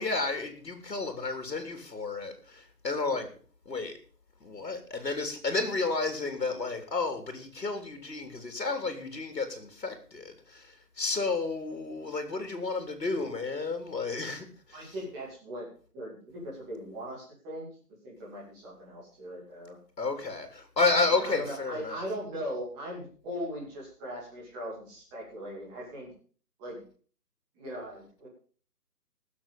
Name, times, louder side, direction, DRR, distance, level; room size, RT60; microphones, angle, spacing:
voice 1, 0.0-3.3 3.7-3.9 4.4-14.9 20.0-22.0, left 3 dB, 85° left, 7 dB, 3.6 m, -31 dB
voice 2, 14.7-15.7 15.9-17.7 18.0-19.8 21.0-26.1 26.6-26.8 27.5-28.3, equal, 5° right, -5 dB, 2.6 m, -39 dB
18.5 x 7.6 x 5.4 m, 0.42 s
hypercardioid pair, 170°, 49 cm